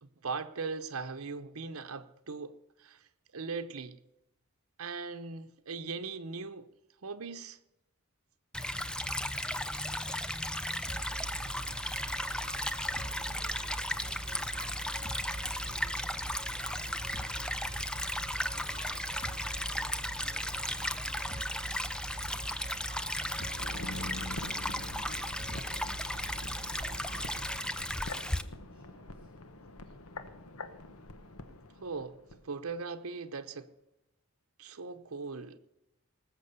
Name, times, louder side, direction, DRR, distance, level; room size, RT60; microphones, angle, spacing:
voice 1, 0.0-3.0 3.3-4.0 4.8-6.7 7.0-7.6 31.8-33.7 34.6-35.6, right 4 dB, 85° right, 0.9 m, -39 dB
Stream / Trickle dribble, 8.5-28.4, left 1 dB, 5° left, 0.5 m, -35 dB
sound 1, 10.9-27.6, right 3 dB, 45° right, 2.7 m, -45 dB
voice 2, 12.8-14.4 14.7-15.0 15.3-17.5 18.4-21.6 22.2-25.3 26.2-29.4, right 1 dB, 25° right, 7.1 m, -61 dB
sound 2, 23.3-32.4 32.7-32.8, left 2 dB, 90° left, 1.2 m, -45 dB
19.5 x 7.6 x 6.7 m
head